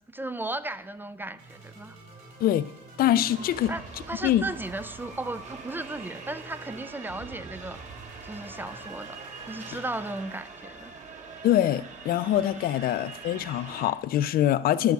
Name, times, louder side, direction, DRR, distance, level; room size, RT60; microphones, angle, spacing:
voice 1, 0.1-2.0 3.7-7.8 8.2-9.2 9.5-10.9, right 2 dB, 10° right, 0.4 m, -35 dB
sound 1, 1.0-10.3, right 3 dB, 60° right, 4.1 m, -48 dB
voice 2, 3.0-3.7 4.2-4.4 9.7-9.8 11.4-14.9, left 12 dB, 60° left, 0.5 m, -24 dB
sound 2, 3.3-13.9, right 4 dB, 45° right, 1.4 m, -44 dB
11.5 x 8.0 x 4.7 m
cardioid pair, 110°, 17 cm